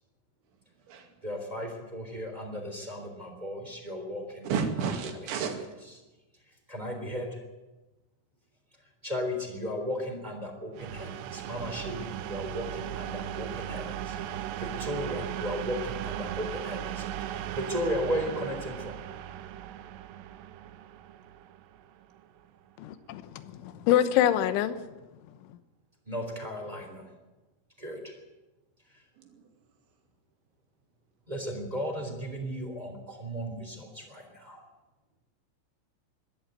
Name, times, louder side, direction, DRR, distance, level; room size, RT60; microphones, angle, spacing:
voice 1, 1.2-4.5 6.7-7.4 9.0-14.1 14.5-18.9 26.1-27.0 27.8-28.2 31.3-34.6, equal, 10° right, 2.8 m, -35 dB
voice 2, 4.4-5.5 29.2-29.3, right 6 dB, 65° right, 4.4 m, -31 dB
sound 1, 10.7-22.4, right 11 dB, 90° right, 2.4 m, -37 dB
voice 3, 22.8-24.8, left 11 dB, 75° left, 3.2 m, -25 dB
22.0 x 13.0 x 9.1 m
omnidirectional pair, 6.0 m